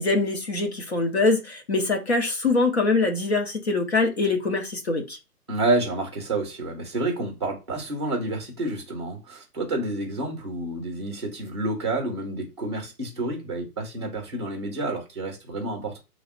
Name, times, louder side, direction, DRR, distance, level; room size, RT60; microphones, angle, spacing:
voice 1, 0.0-5.2, left 3 dB, 45° left, 0.7 m, -23 dB
voice 2, 5.5-16.0, right 2 dB, 20° right, 0.7 m, -29 dB
3.1 x 2.0 x 2.5 m
hypercardioid pair, 165°, 46 cm